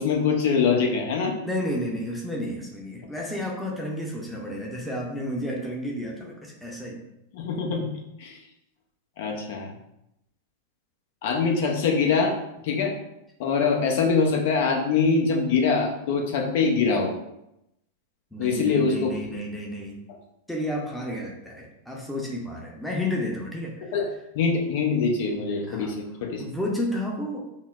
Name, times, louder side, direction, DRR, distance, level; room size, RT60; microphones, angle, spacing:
voice 1, 0.0-1.3 7.3-7.9 8.2-8.4 9.2-9.7 11.2-12.4 12.6-12.9 13.4-17.2 18.4-19.3 23.9-24.1 24.3-26.4, left 5 dB, 60° left, 1 dB, 0.8 m, -23 dB
voice 2, 1.4-7.1 18.3-20.0 20.5-23.9 25.7-25.9 26.4-27.5, left 1 dB, 5° left, -2 dB, 0.7 m, -31 dB
5.5 x 2.1 x 2.4 m, 0.85 s
hypercardioid pair, 100°, 0 cm